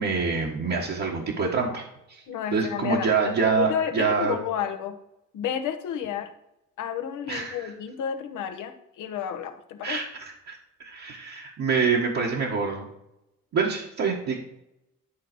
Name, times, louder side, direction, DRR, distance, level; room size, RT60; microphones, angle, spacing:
voice 1, 0.0-1.8 2.1-2.2 2.5-4.4 7.3-7.7 9.8-12.9 13.5-14.4, right 5 dB, 60° right, -3 dB, 1.5 m, -26 dB
voice 2, 2.3-3.1 3.6-5.0 5.3-6.3 6.8-10.0, left 9 dB, 85° left, 7 dB, 1.1 m, -31 dB
11.0 x 4.0 x 6.1 m, 0.84 s
cardioid pair, 90°, 30 cm